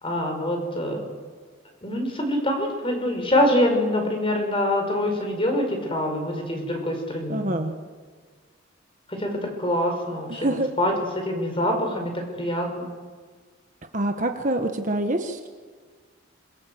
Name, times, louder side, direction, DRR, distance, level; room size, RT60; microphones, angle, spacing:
voice 1, 0.0-1.0 1.8-7.5 9.1-12.9, left 1 dB, 25° left, 3 dB, 5.4 m, -25 dB
voice 2, 7.3-7.7 10.3-10.7 13.9-15.5, right 1 dB, 35° right, 5 dB, 1.4 m, -26 dB
27.0 x 23.5 x 7.9 m, 1.5 s
head